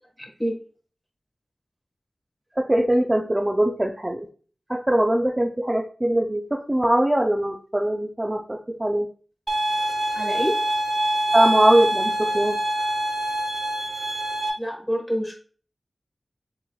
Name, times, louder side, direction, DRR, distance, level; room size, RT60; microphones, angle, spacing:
voice 1, 0.2-0.5 10.1-10.6 14.6-15.3, equal, 5° left, 1 dB, 1.2 m, -27 dB
voice 2, 2.6-4.3 4.7-9.1 11.3-12.6, right 1 dB, 20° right, 1 dB, 0.4 m, -22 dB
sound 1, 9.5-14.5, right 1 dB, 50° right, 0.9 m, -24 dB
6.7 x 3.0 x 2.3 m, 0.41 s
wide cardioid pair, 75°, 0 cm